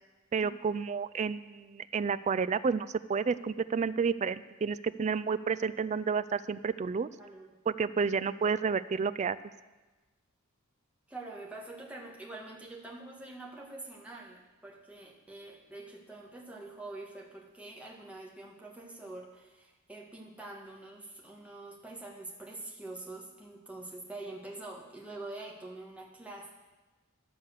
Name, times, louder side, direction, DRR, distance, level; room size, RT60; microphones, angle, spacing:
voice 1, 0.3-7.1 7.7-9.4, right 5 dB, 35° right, 16 dB, 0.3 m, -30 dB
voice 2, 7.2-7.5 11.1-26.5, right 2 dB, 5° right, -2 dB, 1.6 m, -45 dB
12.5 x 7.0 x 6.5 m, 1.2 s
head